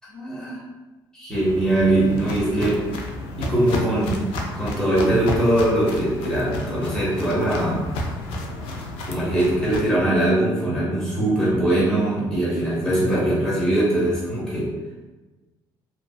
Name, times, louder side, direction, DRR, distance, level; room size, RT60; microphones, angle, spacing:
voice 1, 0.1-0.6 1.1-2.8 3.3-4.3 4.5-7.8 9.0-14.7, right 1 dB, 5° left, -9 dB, 1.2 m, -21 dB
Walk footsteps, 1.3-9.8, left 1 dB, 90° left, 0.4 m, -31 dB
2.5 x 2.4 x 2.3 m, 1.2 s
cardioid pair, 125°, 9 cm